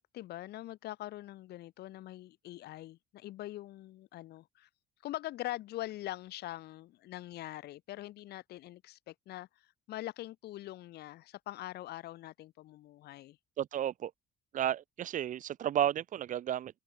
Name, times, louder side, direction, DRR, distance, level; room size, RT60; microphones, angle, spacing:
voice 1, 0.0-4.7 5.0-9.5 9.9-13.4, left 15 dB, 75° left, 2.4 m, -43 dB
voice 2, 13.6-14.1 14.5-16.8, right 11 dB, 50° right, 0.7 m, -32 dB
open air
cardioid pair, 110°, 17 cm